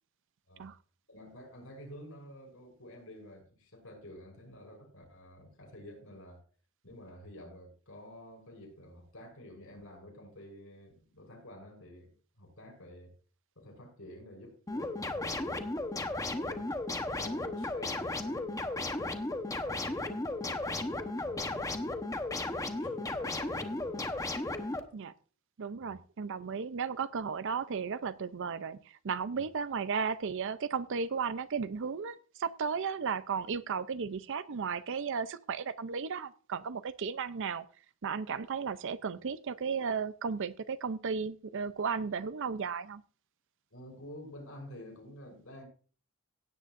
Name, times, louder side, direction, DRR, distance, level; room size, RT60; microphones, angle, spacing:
voice 1, 1.1-6.4 6.8-13.1 13.6-15.8 16.0-16.8 17.1-22.0 22.6-24.0 25.8-26.0 43.7-45.7, left 1 dB, 70° left, 5.8 m, -50 dB
sound 1, 14.7-24.8, left 2 dB, 15° left, 1.0 m, -35 dB
voice 2, 25.6-37.6 38.0-43.0, right 6 dB, 60° right, 0.5 m, -34 dB
17.0 x 9.2 x 2.5 m
head